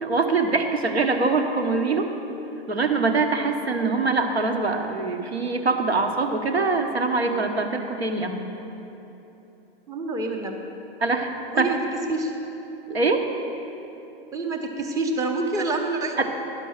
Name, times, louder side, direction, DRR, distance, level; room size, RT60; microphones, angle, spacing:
voice 1, 0.0-2.1 2.7-8.4 11.0-11.7 12.9-13.3 16.2-16.3, right 3 dB, 80° right, 5 dB, 1.0 m, -23 dB
voice 2, 9.9-10.6 11.5-12.3 14.3-16.1, right 2 dB, 10° right, 3 dB, 0.6 m, -27 dB
11.0 x 6.1 x 6.3 m, 3.0 s
figure-of-eight pair, 105°, 31 cm